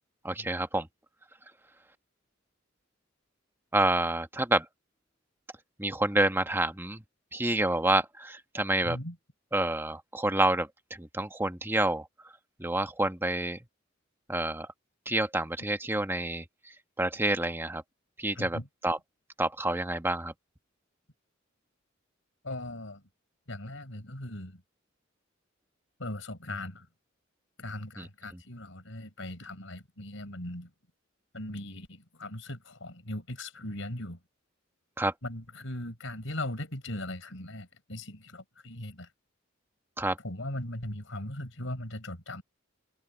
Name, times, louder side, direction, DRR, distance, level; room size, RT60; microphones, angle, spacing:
voice 1, 0.2-0.9 3.7-4.6 5.8-7.0 7.3-9.0 9.5-12.1 12.6-13.6 14.3-14.7 15.1-16.4 17.0-17.8 18.2-19.0 19.4-20.3 28.0-28.1 35.0-35.1 40.0-40.2, right 2 dB, 10° right, 1.3 m, -28 dB
voice 2, 8.8-9.2 18.3-18.7 22.4-23.0 23.5-24.6 26.0-26.9 27.6-30.7 31.3-34.2 35.2-39.1 40.2-42.4, left 1 dB, 75° left, 5.0 m, -39 dB
head